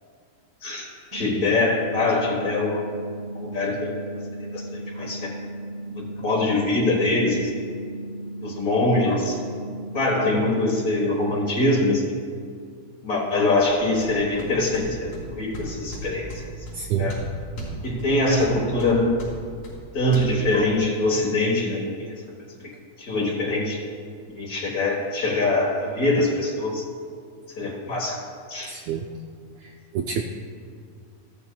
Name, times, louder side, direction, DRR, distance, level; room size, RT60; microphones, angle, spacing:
voice 1, 1.1-2.8 3.3-4.0 4.5-5.3 6.0-7.5 8.4-9.4 9.9-12.0 13.0-16.3 17.0-17.2 17.8-19.1 19.9-22.1 23.0-23.8 24.3-26.8 27.6-28.2 28.5-28.7, left 2 dB, 75° left, -2 dB, 0.8 m, -23 dB
sound 1, 1.1-11.1, right 1 dB, 50° right, 2.4 m, -36 dB
sound 2, 13.6-20.2, right 1 dB, 50° left, 4.2 m, -37 dB
voice 2, 16.7-17.2 28.7-29.1 29.6-30.2, right 7 dB, 80° right, 3 dB, 1.6 m, -28 dB
14.0 x 13.0 x 2.3 m, 2.2 s
omnidirectional pair, 3.7 m